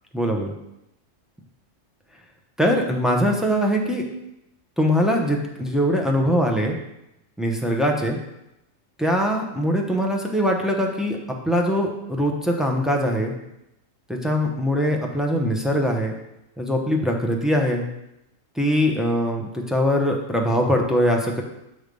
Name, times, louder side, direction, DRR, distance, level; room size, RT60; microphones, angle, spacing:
voice 1, 0.1-0.5 2.6-4.0 4.8-6.8 7.4-8.2 9.0-11.2 11.4-13.3 14.1-16.2 16.6-17.9 18.6-21.4, equal, ahead, 0 dB, 0.4 m, -22 dB
8.2 x 3.3 x 5.2 m, 0.87 s
omnidirectional pair, 1.4 m